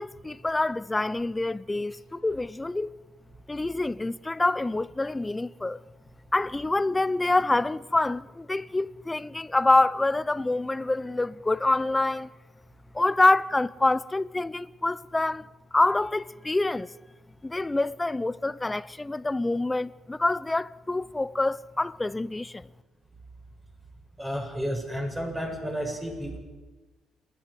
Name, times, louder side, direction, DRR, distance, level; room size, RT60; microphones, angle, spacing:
voice 1, 0.0-2.9 3.5-5.8 6.3-12.3 12.9-16.9 17.4-22.7, left 2 dB, 15° left, 0.7 m, -26 dB
voice 2, 24.2-26.4, equal, 15° right, 6.9 m, -31 dB
29.0 x 11.5 x 8.4 m
supercardioid pair, 65°, 0 cm